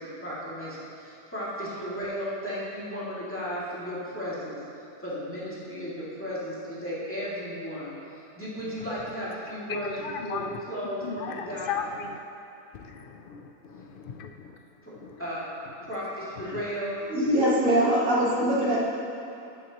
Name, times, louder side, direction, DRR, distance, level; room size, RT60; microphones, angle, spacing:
voice 1, 0.0-4.6 5.0-7.9 8.4-10.0 10.2-11.8 14.8-14.9 15.2-15.5 15.8-17.0, equal, 10° left, -10 dB, 2.3 m, -34 dB
voice 2, 9.7-10.6 11.0-12.2 12.7-14.6 14.9-15.2 16.5-16.6, left 6 dB, 75° left, 5 dB, 0.5 m, -36 dB
voice 3, 17.1-18.8, equal, 60° right, -6 dB, 2.0 m, -22 dB
13.0 x 8.3 x 3.0 m, 2.9 s
omnidirectional pair, 1.6 m